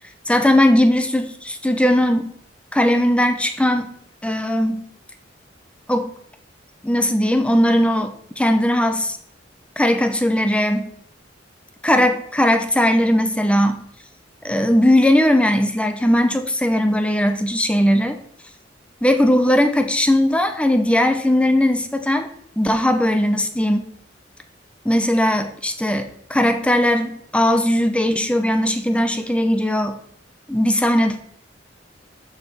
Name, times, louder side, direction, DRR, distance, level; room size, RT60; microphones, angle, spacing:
voice 1, 0.3-2.3 2.7-3.9 4.2-4.8 5.9-6.1 6.8-9.2 9.8-10.9 11.8-13.8 14.4-18.2 19.0-22.3 22.6-23.8 24.8-30.0 30.5-31.3, left 1 dB, 5° left, 7 dB, 0.7 m, -18 dB
6.7 x 5.6 x 7.2 m, 0.67 s
head